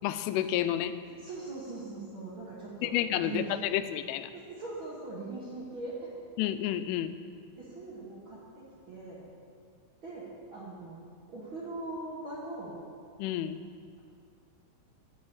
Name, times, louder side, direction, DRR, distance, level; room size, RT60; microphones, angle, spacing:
voice 1, 0.0-0.9 2.8-4.3 6.4-7.1 13.2-13.6, left 12 dB, 90° left, 11 dB, 3.1 m, -30 dB
voice 2, 1.2-3.5 4.3-6.1 7.6-9.2 10.0-11.0 11.3-12.8, right 2 dB, 85° right, -7 dB, 1.1 m, -41 dB
11.5 x 6.3 x 8.2 m, 2.2 s
omnidirectional pair, 5.5 m